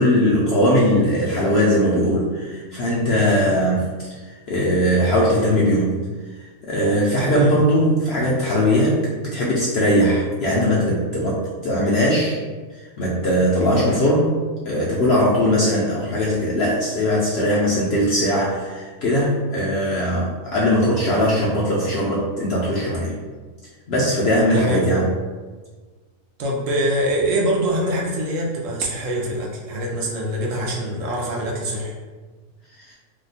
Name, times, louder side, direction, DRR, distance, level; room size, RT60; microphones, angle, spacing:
voice 1, 0.0-3.9 4.5-6.0 6.6-12.4 13.0-14.3 14.6-23.1 23.9-25.1 32.9-33.0, equal, 65° left, -5 dB, 0.7 m, -19 dB
voice 2, 7.2-7.5 24.5-25.1 26.4-31.9, right 1 dB, 70° right, -2 dB, 0.9 m, -24 dB
2.8 x 2.1 x 3.9 m, 1.4 s
omnidirectional pair, 1.5 m